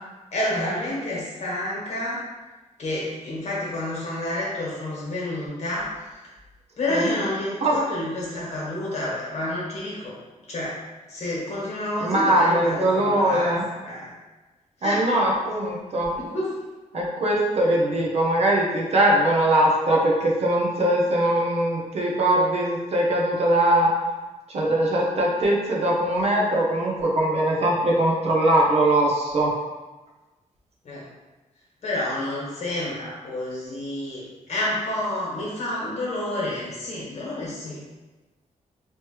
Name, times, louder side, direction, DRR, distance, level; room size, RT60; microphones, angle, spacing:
voice 1, 0.3-2.2 2.8-5.9 6.8-10.1 10.5-10.8 11.1-13.6 13.8-14.1 14.8-15.0 16.3-16.5 30.8-31.0 31.8-34.2 34.5-37.8, left 1 dB, 55° left, -6 dB, 1.4 m, -29 dB
voice 2, 12.0-13.6 14.8-16.1 16.9-23.9 24.5-29.5, right 1 dB, 55° right, -2 dB, 0.7 m, -21 dB
3.1 x 3.1 x 3.0 m, 1.2 s
wide cardioid pair, 130°, 13 cm